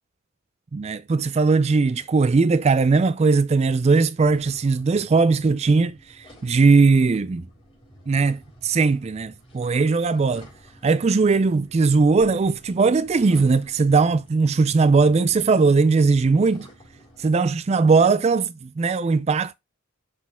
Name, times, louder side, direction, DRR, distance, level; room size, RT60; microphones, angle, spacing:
voice 1, 0.7-7.5 8.1-10.5 10.8-16.7 17.2-19.5, right 4 dB, 30° right, 0.3 m, -19 dB
sound 1, 4.2-17.3, equal, 25° left, 4.3 m, -50 dB
6.3 x 6.1 x 3.5 m
head